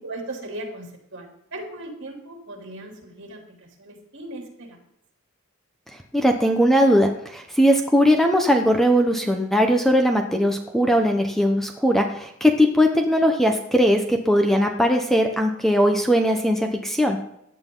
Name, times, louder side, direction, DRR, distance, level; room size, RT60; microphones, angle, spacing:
voice 1, 0.0-3.4 3.8-4.8, right 1 dB, 60° right, 1 dB, 3.5 m, -37 dB
voice 2, 6.1-17.2, equal, ahead, 4 dB, 1.1 m, -19 dB
16.5 x 10.5 x 4.0 m, 0.76 s
head